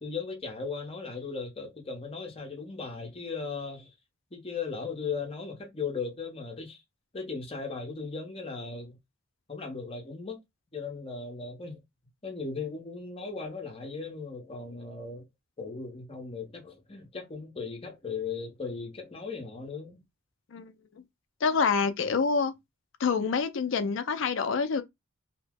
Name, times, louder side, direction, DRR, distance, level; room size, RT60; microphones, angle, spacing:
voice 1, 0.0-3.9 4.3-6.8 7.1-9.0 9.5-10.4 10.7-11.8 12.2-15.2 15.6-20.0, left 4 dB, 30° left, 0.8 m, -37 dB
voice 2, 21.4-22.5 23.0-24.8, left 5 dB, 60° left, 0.4 m, -26 dB
2.8 x 2.0 x 3.4 m
head